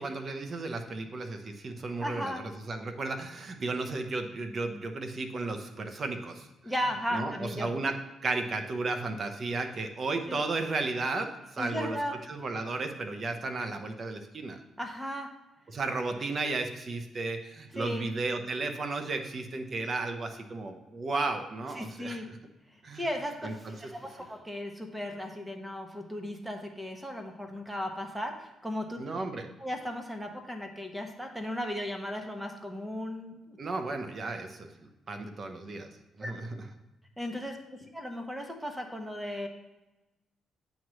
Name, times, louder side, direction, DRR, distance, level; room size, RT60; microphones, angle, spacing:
voice 1, 0.0-6.5 7.1-12.0 12.3-14.6 15.7-22.4 22.8-23.1 23.4-23.7 29.0-29.5 33.6-35.9 36.2-36.6, right 3 dB, 45° right, 6 dB, 0.9 m, -34 dB
voice 2, 2.0-2.4 6.6-7.7 10.3-10.4 11.6-12.1 14.8-15.3 17.7-18.1 21.7-22.3 22.7-29.0 29.6-33.6 36.2-36.3 37.2-39.5, equal, 5° right, 3 dB, 1.1 m, -36 dB
8.8 x 3.1 x 6.2 m, 1.0 s
cardioid pair, 90°, 0 cm